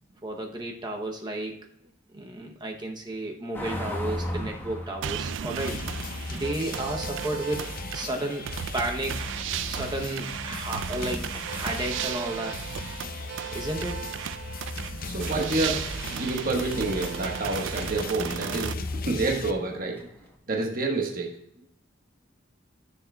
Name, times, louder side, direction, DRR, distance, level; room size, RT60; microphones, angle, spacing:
voice 1, 0.2-1.6 2.1-5.8 6.3-9.2 9.7-12.6 13.5-14.0, right 1 dB, 20° right, 2 dB, 0.7 m, -33 dB
sound 1, 3.5-20.4, equal, 10° left, 1.1 m, -42 dB
sound 2, 5.0-18.7, right 9 dB, 65° right, 0.3 m, -35 dB
sound 3, 5.6-19.5, left 3 dB, 45° left, 0.6 m, -37 dB
voice 2, 15.0-18.8 19.1-20.1 20.5-21.3, right 2 dB, 45° right, 1 dB, 1.3 m, -28 dB
14.0 x 6.7 x 2.2 m, 0.75 s
head